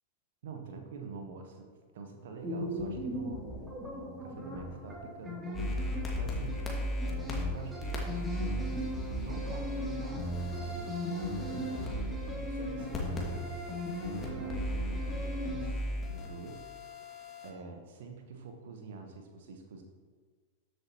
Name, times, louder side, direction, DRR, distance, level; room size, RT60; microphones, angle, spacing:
voice 1, 0.4-1.7 1.9-3.5 3.9-6.6 7.0-8.3 9.2-12.1 12.4-13.5 13.9-16.6 16.9-17.0 17.4-19.8, right 4 dB, 55° right, 4 dB, 1.2 m, -47 dB
sound 1, 2.4-15.7, equal, 15° right, 2.9 m, -38 dB
sound 2, 5.5-17.5, left 1 dB, 20° left, 2.1 m, -37 dB
13.5 x 8.0 x 3.0 m, 1.5 s
figure-of-eight pair, 95°, 0 cm